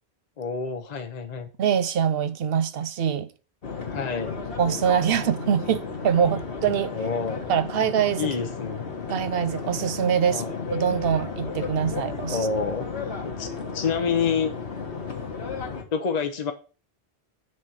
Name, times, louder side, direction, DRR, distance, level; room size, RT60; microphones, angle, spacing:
voice 1, 0.4-1.5 3.9-4.3 6.9-7.4 8.2-8.9 10.3-10.6 12.3-12.9 13.2-13.5 13.7-14.6 15.9-16.5, left 6 dB, 45° left, 0.8 m, -28 dB
voice 2, 1.6-3.3 4.6-7.0 7.5-8.3 9.1-10.4 10.7-12.5, right 8 dB, 65° right, 0.7 m, -24 dB
sound 1, 3.6-15.8, left 5 dB, 60° left, 1.6 m, -33 dB
6.4 x 4.1 x 6.2 m
omnidirectional pair, 1.1 m